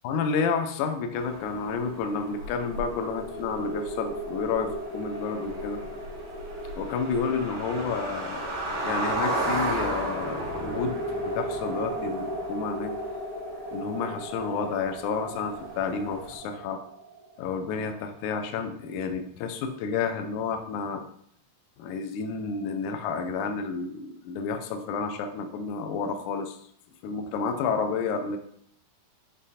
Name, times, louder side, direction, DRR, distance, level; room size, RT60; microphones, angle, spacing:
voice 1, 0.0-5.8 6.8-8.5 8.8-12.9 13.7-16.8 17.4-21.0 21.8-26.6 27.0-28.4, left 5 dB, 80° left, 6 dB, 1.7 m, -30 dB
sound 1, 1.1-16.4, right 1 dB, 60° right, 2.7 m, -35 dB
sound 2, 1.5-18.3, right 1 dB, 60° left, 2.5 m, -38 dB
6.9 x 3.8 x 4.2 m, 0.66 s
omnidirectional pair, 4.3 m